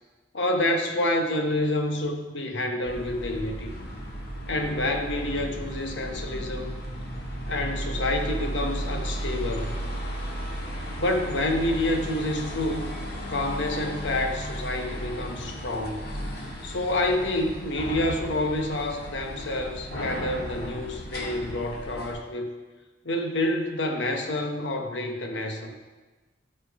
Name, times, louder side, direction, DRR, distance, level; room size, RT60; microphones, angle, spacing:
voice 1, 0.3-3.7 4.5-6.7 7.5-9.7 11.0-12.9 13.3-16.0 16.6-22.5 23.0-25.7, left 1 dB, 80° left, 4 dB, 1.0 m, -28 dB
sound 1, 2.9-22.1, equal, 55° left, 1.6 m, -34 dB
13.5 x 5.6 x 3.5 m, 1.3 s
head